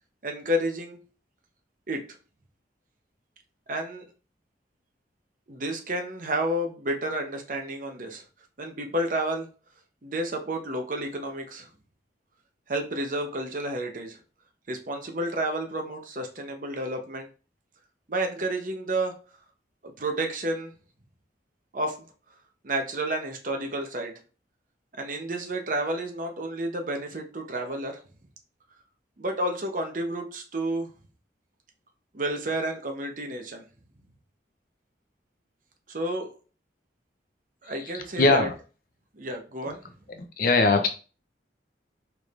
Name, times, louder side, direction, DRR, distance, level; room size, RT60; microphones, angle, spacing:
voice 1, 0.2-1.0 1.9-2.1 3.7-4.0 5.5-8.2 8.6-9.5 10.0-11.7 12.7-14.2 14.7-17.3 18.1-19.2 19.8-20.7 21.7-22.1 22.6-24.2 25.0-28.0 29.2-30.9 32.1-33.6 35.9-36.3 37.6-38.5 39.1-39.8, right 1 dB, 45° right, 4 dB, 0.8 m, -30 dB
voice 2, 37.9-38.5 40.2-40.9, left 3 dB, 50° left, 6 dB, 0.6 m, -21 dB
4.7 x 3.3 x 2.5 m, 0.35 s
head